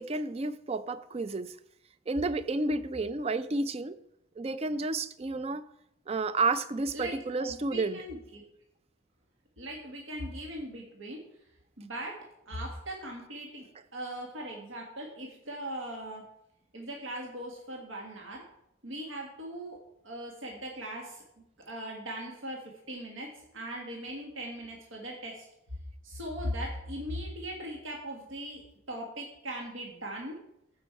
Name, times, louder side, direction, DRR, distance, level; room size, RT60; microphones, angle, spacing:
voice 1, 0.0-1.5 2.1-4.0 4.4-5.6 6.1-8.1, right 3 dB, 30° right, 14 dB, 0.4 m, -31 dB
voice 2, 6.9-8.4 9.6-11.2 11.8-12.2 12.5-13.7 13.9-16.2 16.7-18.4 18.8-19.8 20.0-21.2 21.7-25.5 26.0-28.6 28.9-30.4, right 1 dB, 75° right, -1 dB, 1.6 m, -39 dB
14.0 x 5.3 x 4.5 m, 0.80 s
head